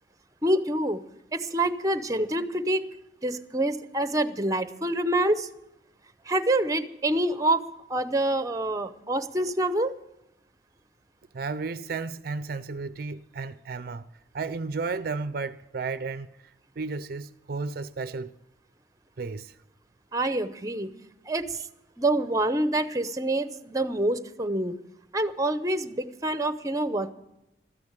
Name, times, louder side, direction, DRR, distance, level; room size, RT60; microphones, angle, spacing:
voice 1, 0.4-1.0 1.3-2.9 3.2-5.5 6.3-9.9 20.1-20.9 21.3-21.6 22.0-24.8 25.1-27.1, right 1 dB, 20° right, 0.7 m, -26 dB
voice 2, 11.3-14.1 14.3-18.3 19.2-19.6, right 4 dB, 55° right, 0.5 m, -33 dB
13.5 x 9.6 x 8.8 m
head